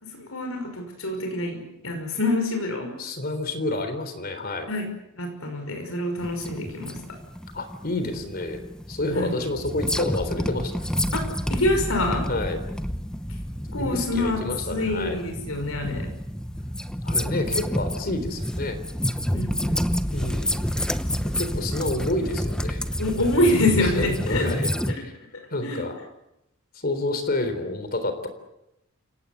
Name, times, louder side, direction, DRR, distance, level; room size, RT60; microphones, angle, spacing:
voice 1, 0.0-2.9 4.7-4.9 5.1-7.2 9.1-9.3 11.1-12.3 13.7-16.1 19.3-19.8 23.0-24.9 25.3-25.8, left 1 dB, 75° left, 4 dB, 5.8 m, -26 dB
voice 2, 3.0-4.7 7.5-8.6 8.9-10.8 12.3-12.6 13.8-15.2 17.0-18.8 20.1-20.6 21.2-22.8 23.8-24.7 25.0-25.1 25.5-26.0 26.7-28.3, left 2 dB, 45° left, 9 dB, 3.7 m, -29 dB
Laser Shots - Entire Session, 6.2-24.9, equal, 5° left, 0.9 m, -29 dB
29.5 x 18.0 x 8.3 m, 0.87 s
head